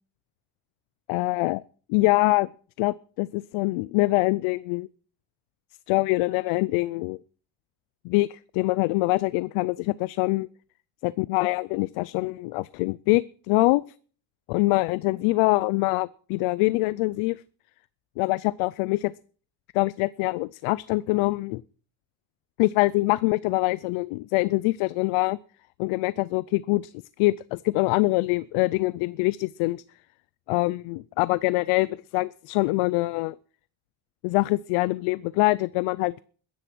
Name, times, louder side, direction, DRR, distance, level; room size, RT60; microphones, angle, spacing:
voice 1, 1.1-1.6 1.9-2.5 2.8-4.9 5.9-7.2 8.0-10.5 11.0-13.8 14.5-17.4 18.2-19.1 19.7-21.6 22.6-25.4 25.8-26.9 27.2-29.8 30.5-33.3 34.2-36.2, left 22 dB, 90° left, 19 dB, 0.6 m, -24 dB
15.0 x 10.5 x 6.2 m, 0.43 s
cardioid pair, 105°, 49 cm